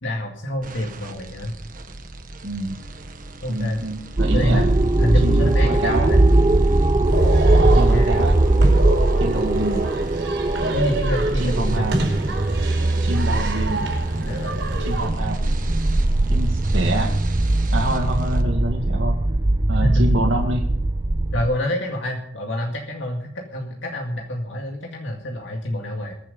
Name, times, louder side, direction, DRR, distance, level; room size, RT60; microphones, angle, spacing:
voice 1, 0.0-1.5 3.4-3.8 4.3-6.2 7.6-8.2 10.7-11.9 14.2-14.7 19.8-20.1 21.3-26.2, left 1 dB, 80° left, 0 dB, 2.1 m, -27 dB
sound 1, 0.6-18.4, right 2 dB, 50° right, 1.5 m, -40 dB
voice 2, 2.4-2.8 3.5-4.7 5.2-6.1 7.8-8.4 9.2-9.9 11.3-11.9 13.0-13.9 14.8-15.4 16.3-17.1 17.7-19.2 19.7-20.6, right 1 dB, 85° right, 0 dB, 1.9 m, -26 dB
sound 2, 4.2-21.5, right 2 dB, 25° right, 0.6 m, -20 dB
sound 3, 7.0-15.1, right 2 dB, 70° right, 4.9 m, -29 dB
22.0 x 7.7 x 5.3 m, 0.66 s
head